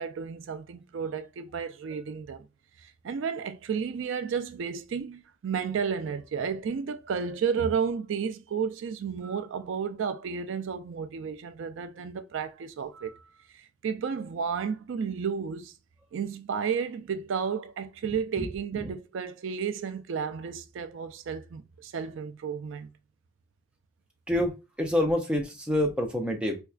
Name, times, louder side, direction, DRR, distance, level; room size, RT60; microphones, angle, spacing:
voice 1, 0.0-2.5 2.8-15.7 16.1-22.9, right 6 dB, 75° right, 0.4 m, -32 dB
voice 2, 18.1-18.5 18.8-18.9 24.3-26.6, left 1 dB, 5° right, 0.5 m, -27 dB
4.4 x 2.3 x 2.3 m
head